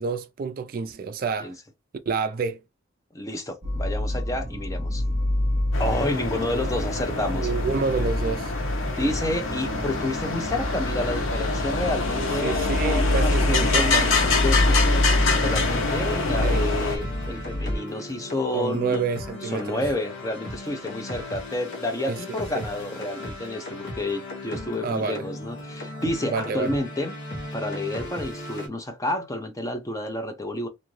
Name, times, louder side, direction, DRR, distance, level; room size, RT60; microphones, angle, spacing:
voice 1, 0.0-1.5 2.1-2.6 7.3-8.5 12.1-14.1 16.4-16.7 18.5-19.8 22.0-22.7 24.8-25.3 26.3-26.7, right 5 dB, 45° right, 0.3 m, -28 dB
voice 2, 3.1-5.0 5.8-7.5 9.0-14.1 14.4-19.0 19.4-27.1 27.5-30.7, left 1 dB, 15° left, 0.5 m, -30 dB
sound 1, 3.6-17.8, left 1 dB, 30° right, 0.7 m, -27 dB
sound 2, 5.7-17.0, left 4 dB, 80° left, 0.8 m, -26 dB
sound 3, 13.5-28.7, left 1 dB, 55° left, 1.1 m, -37 dB
2.6 x 2.5 x 3.0 m
head